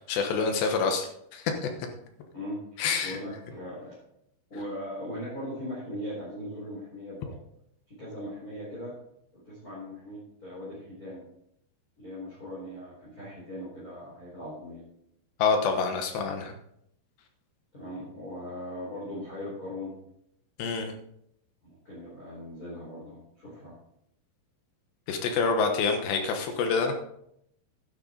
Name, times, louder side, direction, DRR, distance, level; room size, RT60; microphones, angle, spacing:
voice 1, 0.1-1.7 2.8-3.2 15.4-16.6 20.6-20.9 25.1-26.9, left 5 dB, 70° left, 5 dB, 3.1 m, -27 dB
voice 2, 2.3-3.9 4.5-7.3 7.9-8.9 9.3-11.2 12.0-14.8 17.7-19.9 21.6-23.7, left 1 dB, 20° left, -7 dB, 4.8 m, -39 dB
11.5 x 11.0 x 3.9 m, 0.73 s
omnidirectional pair, 5.4 m